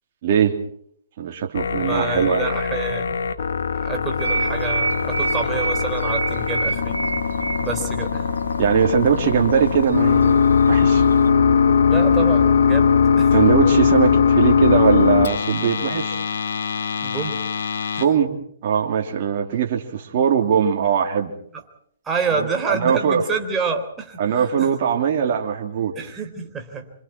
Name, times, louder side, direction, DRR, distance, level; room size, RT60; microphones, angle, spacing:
voice 1, 0.2-0.6 1.2-2.4 8.6-11.0 13.3-16.2 18.0-18.4 18.6-21.3 22.4-23.2 24.2-26.1, right 7 dB, 50° right, 1 dB, 3.2 m, -20 dB
sound 1, 1.6-18.1, left 6 dB, 65° left, 2.1 m, -20 dB
voice 2, 1.7-3.2 3.8-7.0 7.6-8.3 11.9-12.9 13.2-13.3 17.0-17.4 22.0-24.7 26.0-26.9, right 5 dB, 15° right, 3 dB, 3.8 m, -28 dB
sound 2, 4.2-11.3, right 4 dB, 85° right, 2.1 m, -29 dB
27.0 x 26.5 x 4.7 m, 0.63 s
hypercardioid pair, 130°, 0 cm